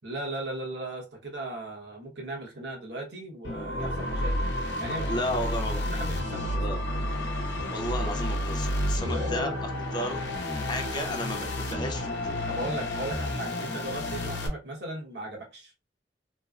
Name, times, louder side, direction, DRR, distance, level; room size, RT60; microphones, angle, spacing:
voice 1, 0.0-5.2 5.8-6.6 9.0-9.6 12.5-15.7, right 1 dB, 75° right, -1 dB, 1.2 m, -37 dB
sound 1, 3.4-14.5, left 1 dB, 85° left, 0.7 m, -31 dB
voice 2, 5.0-5.8 6.5-6.8 7.7-9.5 9.9-12.4, left 1 dB, 25° left, 4 dB, 0.6 m, -33 dB
3.1 x 2.1 x 2.4 m, 0.27 s
head